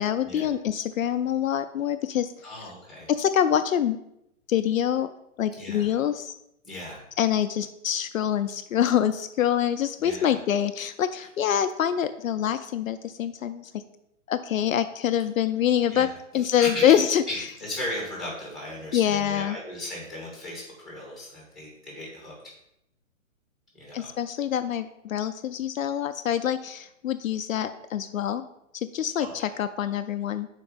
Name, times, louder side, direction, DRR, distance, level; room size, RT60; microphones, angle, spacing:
voice 1, 0.0-2.3 3.1-4.0 4.5-5.1 5.4-6.3 7.2-13.7 14.3-16.1 16.3-17.2 18.9-19.6 23.9-28.4 28.7-30.5, left 10 dB, 75° left, 10 dB, 0.5 m, -25 dB
voice 2, 2.4-3.1 5.6-5.9 6.6-7.0 10.0-10.4 11.2-11.3 15.9-22.5 23.7-24.1 29.1-29.3, left 1 dB, ahead, -3 dB, 2.3 m, -37 dB
5.5 x 4.5 x 5.3 m, 0.80 s
hypercardioid pair, 140°, 41 cm